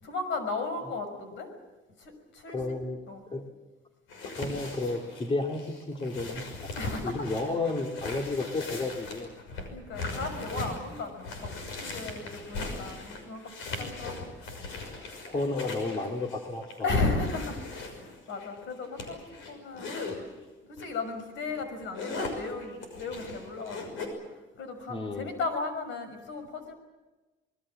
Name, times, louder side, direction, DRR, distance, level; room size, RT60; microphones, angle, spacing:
voice 1, 0.0-1.5 2.0-2.8 3.1-3.2 6.8-7.3 9.7-14.3 16.8-19.2 19.5-20.0 20.7-24.2 24.5-26.7, left 3 dB, 70° left, 8 dB, 6.0 m, -35 dB
voice 2, 2.5-3.0 3.3-3.4 4.4-6.4 7.0-9.3 13.8-14.0 15.3-16.9 24.9-25.3, left 2 dB, 25° left, 2 dB, 2.2 m, -32 dB
sound 1, 4.1-20.2 20.8-21.0 21.4-24.1, left 3 dB, 90° left, 6.1 m, -39 dB
26.0 x 20.5 x 7.5 m, 1.1 s
cardioid pair, 125°, 20 cm